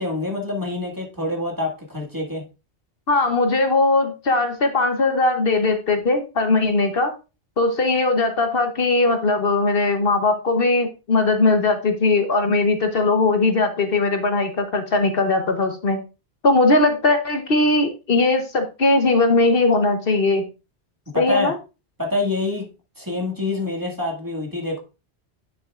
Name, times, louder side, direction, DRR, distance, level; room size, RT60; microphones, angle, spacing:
voice 1, 0.0-2.4 21.1-21.5 22.0-22.7 23.0-24.8, left 2 dB, 20° right, -1 dB, 1.8 m, -26 dB
voice 2, 3.1-7.2 7.6-16.0 16.4-20.4 21.2-21.5, left 3 dB, 60° left, 6 dB, 1.1 m, -19 dB
9.8 x 6.9 x 2.4 m, 0.29 s
omnidirectional pair, 1.1 m